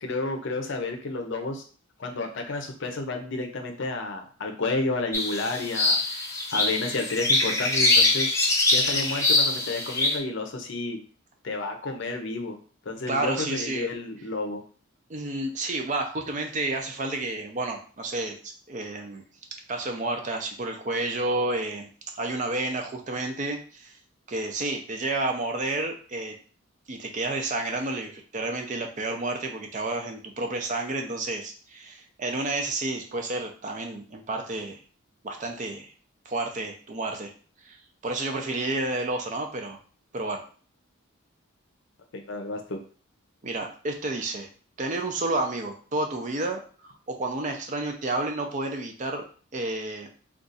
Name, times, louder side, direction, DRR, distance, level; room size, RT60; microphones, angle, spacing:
voice 1, 0.0-1.6 2.0-6.0 6.5-8.4 8.7-11.0 11.4-12.6 12.9-14.6 42.1-42.8, left 3 dB, 60° left, 4 dB, 0.6 m, -31 dB
sound 1, 5.1-10.2, left 2 dB, 15° left, 0.5 m, -23 dB
voice 2, 13.1-13.9 15.1-19.2 19.7-21.9 22.1-24.0 24.3-26.3 26.9-34.8 35.2-35.9 36.3-37.3 37.6-37.8 38.0-39.8 40.1-40.4 43.4-44.5 44.8-49.2 49.5-50.1, right 2 dB, 35° right, 4 dB, 0.5 m, -30 dB
2.6 x 2.4 x 3.9 m, 0.41 s
head